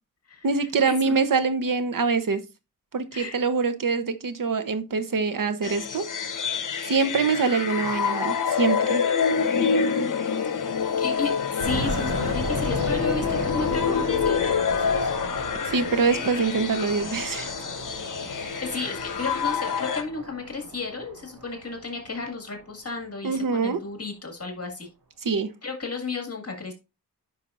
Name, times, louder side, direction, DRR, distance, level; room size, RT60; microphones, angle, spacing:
voice 1, 0.4-2.4 2.9-6.3 6.8-9.0 15.7-17.5 23.2-23.8 25.2-25.5, right 4 dB, 60° right, 1.0 m, -24 dB
sound 1, 5.6-20.0, left 6 dB, 60° left, 1.0 m, -27 dB
voice 2, 10.4-15.1 18.2-24.9 25.6-26.7, left 4 dB, 40° left, 2.0 m, -33 dB
sound 2, 11.6-22.5, right 1 dB, 85° right, 2.6 m, -35 dB
10.0 x 5.6 x 2.5 m
wide cardioid pair, 80°, 37 cm